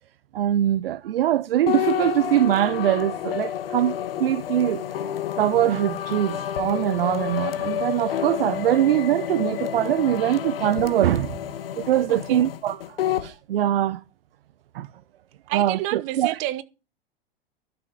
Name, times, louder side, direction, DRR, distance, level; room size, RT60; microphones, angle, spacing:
voice 1, 0.3-4.8 5.4-11.4 11.8-14.0 14.7-14.9 15.5-16.4, right 12 dB, 70° right, 0.7 m, -23 dB
sound 1, 1.7-13.3, left 11 dB, 70° left, 1.3 m, -29 dB
voice 2, 12.1-12.4 15.5-16.6, right 16 dB, 50° right, 1.4 m, -29 dB
12.5 x 6.9 x 8.5 m
hypercardioid pair, 90°, 30 cm